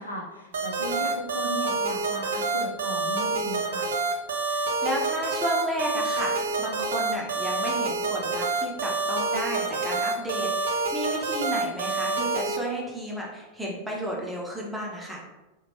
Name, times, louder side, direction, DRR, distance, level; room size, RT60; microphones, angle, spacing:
voice 1, 0.0-3.9, right 1 dB, 80° left, -1 dB, 0.6 m, -36 dB
sound 1, 0.5-12.6, right 3 dB, 65° right, 0.4 m, -27 dB
voice 2, 4.5-15.2, equal, 5° right, -3 dB, 0.7 m, -33 dB
2.9 x 2.1 x 2.9 m, 1.1 s
figure-of-eight pair, 90°, 0 cm